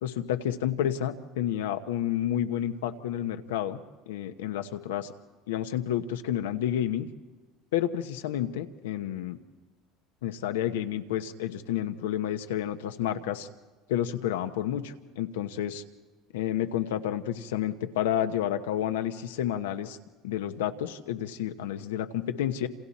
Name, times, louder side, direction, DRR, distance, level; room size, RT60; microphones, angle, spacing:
voice 1, 0.0-3.8 4.1-5.1 5.5-7.1 7.7-9.4 10.2-13.5 13.9-15.8 16.3-20.0 20.2-22.7, left 11 dB, 90° left, 8 dB, 1.1 m, -30 dB
28.0 x 27.5 x 4.3 m, 1.3 s
supercardioid pair, 90°, 0 cm